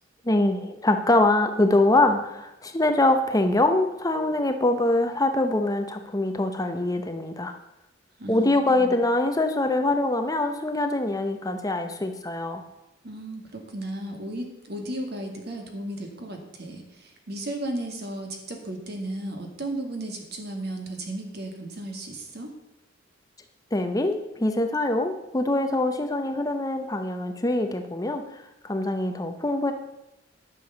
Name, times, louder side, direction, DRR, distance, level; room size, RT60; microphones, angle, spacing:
voice 1, 0.3-7.6 8.3-12.6 23.7-28.2 28.6-29.7, left 2 dB, 20° left, 6 dB, 0.8 m, -24 dB
voice 2, 8.2-9.0 13.0-22.5, right 1 dB, 55° right, 3 dB, 2.1 m, -35 dB
11.0 x 7.0 x 6.9 m, 0.88 s
head